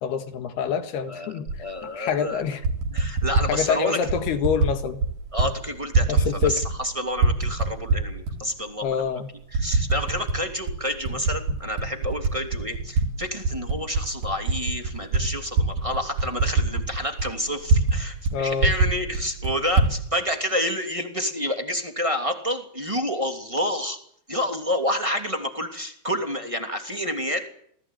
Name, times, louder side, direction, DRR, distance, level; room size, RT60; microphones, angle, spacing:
voice 1, 0.0-1.5 1.8-2.6 3.5-5.0 6.1-6.6 8.8-9.3 18.3-18.7, left 7 dB, 70° left, 8 dB, 3.6 m, -26 dB
voice 2, 1.1-2.4 2.9-4.0 5.3-9.1 9.5-24.0 24.3-27.5, equal, 10° right, 4 dB, 2.0 m, -29 dB
Typing, 1.5-1.6 2.4-3.5 4.1-4.7 5.0-5.5 5.8-6.9 7.2-8.4 8.9-9.0 9.5-10.4 10.7-13.1 13.4-18.0 18.2-18.3 18.6-19.9, right 3 dB, 55° right, 5.1 m, -23 dB
28.0 x 19.5 x 9.4 m, 0.68 s
omnidirectional pair, 5.0 m